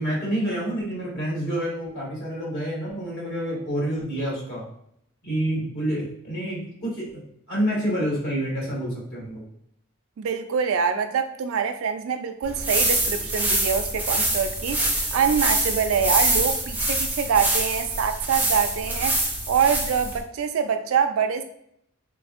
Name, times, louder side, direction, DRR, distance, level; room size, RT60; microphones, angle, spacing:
voice 1, 0.0-4.6 5.2-7.2 7.5-9.4, right 1 dB, 50° left, 1.4 m, -28 dB
voice 2, 10.2-21.4, right 7 dB, 75° right, 0.3 m, -25 dB
sound 1, 12.4-20.2, right 1 dB, 10° right, 0.4 m, -25 dB
3.2 x 2.6 x 2.4 m
head